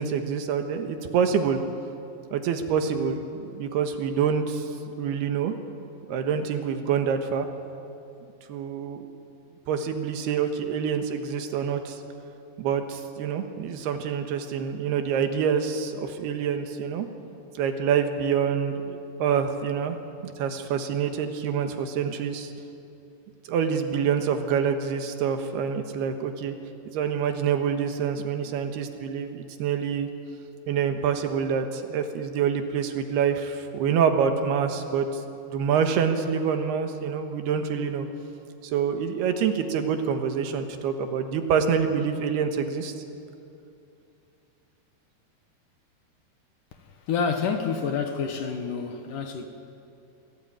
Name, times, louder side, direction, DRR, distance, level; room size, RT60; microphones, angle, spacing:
voice 1, 0.0-1.6 2.3-4.7 5.0-5.5 6.1-7.5 8.5-9.0 9.7-12.0 12.6-17.1 17.5-20.0 20.2-22.5 23.5-26.6 26.9-30.1 30.7-35.2 35.5-38.1 38.6-42.9, right 7 dB, 80° right, 6 dB, 3.3 m, -26 dB
voice 2, 46.8-49.5, left 6 dB, 65° left, 5 dB, 2.4 m, -28 dB
24.5 x 17.0 x 9.0 m, 2.7 s
omnidirectional pair, 4.6 m